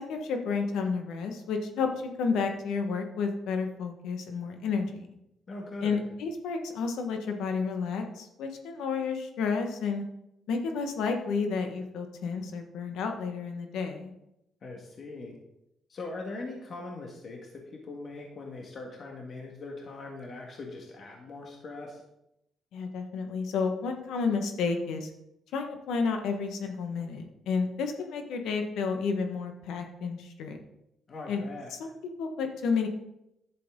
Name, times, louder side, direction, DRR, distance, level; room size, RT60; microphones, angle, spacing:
voice 1, 0.0-1.9 2.2-5.1 5.8-10.0 10.5-14.1 22.7-25.1 25.5-30.6 31.3-31.4 31.7-31.9 32.2-32.9, left 5 dB, 85° left, 5 dB, 1.4 m, -31 dB
voice 2, 5.5-6.0 14.6-15.4 15.9-22.0 31.1-31.7, left 2 dB, 50° left, 0 dB, 1.8 m, -41 dB
11.0 x 7.6 x 3.8 m, 0.85 s
cardioid pair, 90°, 0 cm